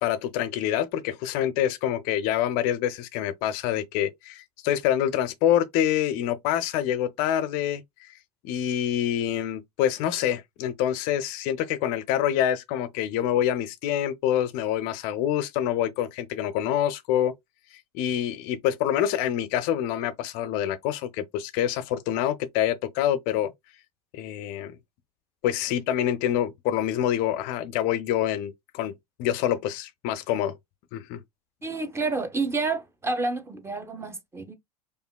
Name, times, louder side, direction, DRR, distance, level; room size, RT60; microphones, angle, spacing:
voice 1, 0.0-8.2 8.4-17.3 17.7-23.5 24.1-24.8 25.4-28.9 29.2-30.6 30.9-31.2, left 11 dB, 45° left, 0.4 m, -26 dB
voice 2, 31.6-34.6, right 3 dB, 15° right, 0.6 m, -29 dB
4.8 x 2.4 x 2.2 m
figure-of-eight pair, 80°, 20 cm